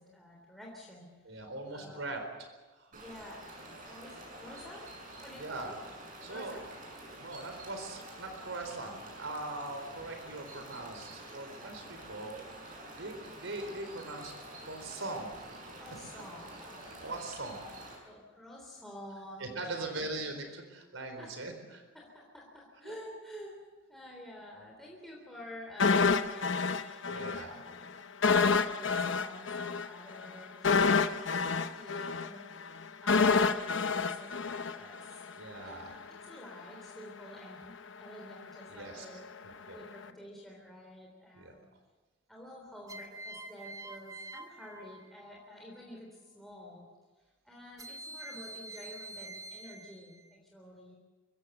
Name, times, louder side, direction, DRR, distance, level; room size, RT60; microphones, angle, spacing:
voice 1, 0.0-1.4 1.7-2.0 3.0-3.4 3.9-4.9 5.2-5.8 6.3-6.6 15.8-17.0 18.0-19.9 21.2-21.3 21.9-23.6 23.9-28.0 28.2-32.7 33.0-35.3 35.6-41.7 42.3-46.9 47.4-51.0, left 1 dB, ahead, -3 dB, 3.5 m, -50 dB
voice 2, 1.2-2.2 2.7-3.0 5.4-5.7 6.2-6.5 7.2-12.4 13.0-14.3 14.7-15.3 17.0-17.6 19.4-21.8 22.8-22.9 27.0-27.6 35.4-35.9 38.7-39.1 39.4-39.8 41.3-41.5, right 2 dB, 75° right, 5 dB, 4.3 m, -41 dB
sound 1, 2.9-17.9, right 1 dB, 45° right, 7.1 m, -48 dB
sound 2, 25.8-27.4 27.7-27.8 28.2-35.3 35.6-35.7, left 5 dB, 65° left, 0.9 m, -28 dB
sound 3, 39.8-40.4 42.9-45.5 47.8-50.4, right 2 dB, 20° right, 1.3 m, -47 dB
24.5 x 16.0 x 7.9 m, 1.3 s
head